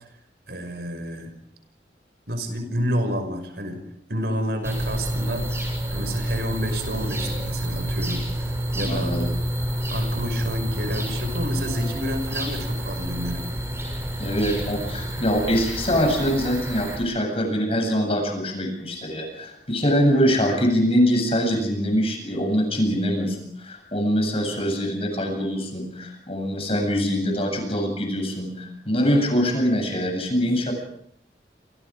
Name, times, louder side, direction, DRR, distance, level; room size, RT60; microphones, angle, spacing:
voice 1, 0.5-1.3 2.3-3.8 4.1-9.1 9.9-13.4, equal, 65° right, 7 dB, 5.9 m, -29 dB
sound 1, 4.6-17.0, right 1 dB, 15° right, 7.2 m, -29 dB
voice 2, 8.7-9.2 14.2-30.7, equal, 35° left, 3 dB, 8.0 m, -23 dB
28.0 x 27.5 x 5.1 m, 0.71 s
head